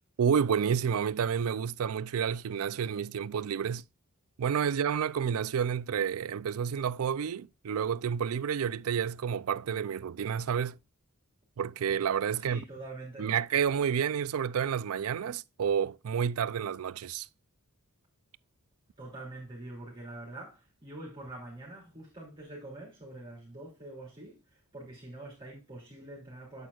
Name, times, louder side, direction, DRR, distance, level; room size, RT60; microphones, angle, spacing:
voice 1, 0.2-3.8 4.4-10.7 11.6-12.6 13.2-17.3, right 7 dB, 70° right, 0.4 m, -30 dB
voice 2, 12.3-13.3 19.0-26.7, right 2 dB, 20° right, 3.2 m, -45 dB
8.5 x 8.1 x 2.4 m
head